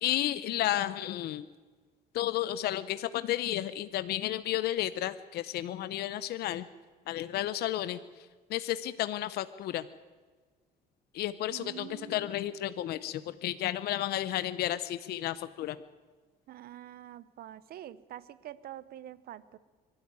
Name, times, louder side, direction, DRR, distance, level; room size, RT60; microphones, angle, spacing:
voice 1, 0.0-1.5 2.1-6.6 7.1-8.0 8.5-9.8 11.1-15.8, left 13 dB, 70° left, 14 dB, 0.8 m, -32 dB
voice 2, 11.5-12.5 16.5-19.6, right 12 dB, 65° right, 17 dB, 1.0 m, -46 dB
23.5 x 12.5 x 9.7 m, 1.4 s
cardioid pair, 110°, 17 cm